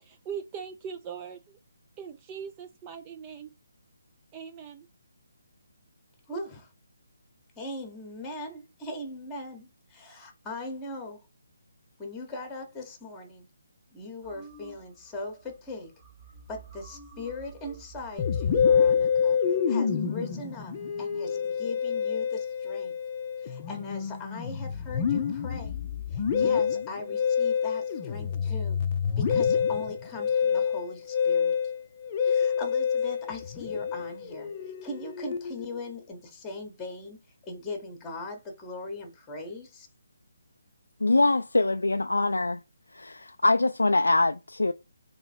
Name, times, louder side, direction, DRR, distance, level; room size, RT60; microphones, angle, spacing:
voice 1, 0.0-1.6 2.0-3.5 4.3-4.9, right 7 dB, 20° right, 0.4 m, -40 dB
voice 2, 6.3-6.7 7.6-11.2 12.0-13.5 13.9-15.9 16.5-22.9 23.4-25.7 26.1-28.8 29.2-31.5 32.2-34.5 34.8-37.2 37.4-39.9, left 2 dB, 10° left, 1.0 m, -40 dB
sound 1, 14.2-15.2 15.4-15.7 16.0-19.2, right 4 dB, 35° right, 1.1 m, -49 dB
Musical instrument, 18.2-35.8, left 7 dB, 30° left, 0.5 m, -27 dB
voice 3, 41.0-42.6 42.9-44.7, left 2 dB, 85° left, 0.3 m, -23 dB
3.0 x 2.9 x 4.3 m
figure-of-eight pair, 150°, 0 cm